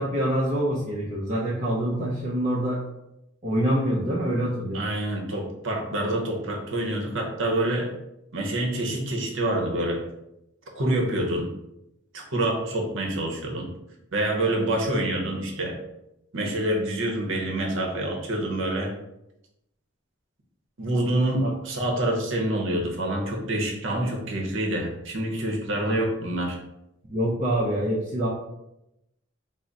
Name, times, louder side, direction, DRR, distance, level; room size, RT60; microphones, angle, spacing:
voice 1, 0.0-2.8 3.4-4.8 21.4-21.5 25.8-26.1 27.1-28.3, right 1 dB, 35° right, -6 dB, 0.6 m, -25 dB
voice 2, 4.7-7.9 8.3-10.0 10.7-11.5 12.1-13.7 14.1-15.8 16.3-18.9 20.8-26.6, right 1 dB, 70° right, 0 dB, 0.8 m, -27 dB
3.7 x 2.1 x 3.9 m, 0.87 s
head